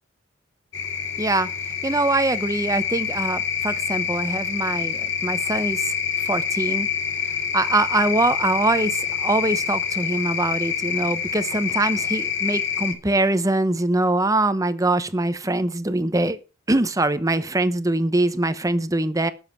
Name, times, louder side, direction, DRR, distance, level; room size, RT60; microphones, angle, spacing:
sound 1, 0.7-12.9, left 7 dB, 65° left, 2.4 m, -26 dB
voice 1, 1.2-1.5 1.8-6.9 7.5-16.4 16.7-19.3, right 2 dB, 15° right, 0.9 m, -23 dB
19.0 x 7.4 x 4.5 m
head